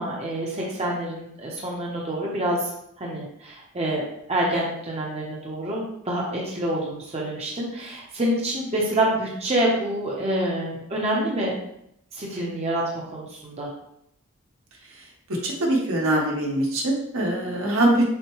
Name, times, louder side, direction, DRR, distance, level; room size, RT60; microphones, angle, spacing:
voice 1, 0.0-2.7 3.0-11.5 12.1-12.8 13.1-13.7, right 1 dB, 30° right, -3 dB, 0.7 m, -27 dB
voice 2, 15.3-18.1, right 1 dB, 70° right, -1 dB, 1.0 m, -23 dB
6.4 x 2.2 x 3.1 m, 0.76 s
head